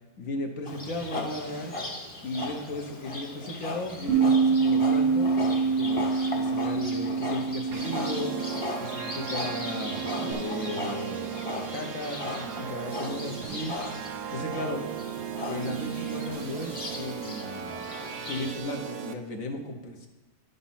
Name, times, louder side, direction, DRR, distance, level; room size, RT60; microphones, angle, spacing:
voice 1, 0.2-1.7 2.2-6.1 6.3-8.5 8.8-9.9 10.4-17.7 18.3-19.8, left 2 dB, 60° left, 4 dB, 1.2 m, -36 dB
Livestock farm animals working animals, 0.6-18.6, left 2 dB, 25° left, 0.9 m, -37 dB
Bass guitar, 4.1-10.3, right 5 dB, 60° right, 1.1 m, -26 dB
sound 1, 7.7-19.1, right 9 dB, 80° right, 1.2 m, -37 dB
10.5 x 4.1 x 5.6 m, 1.1 s
omnidirectional pair, 1.8 m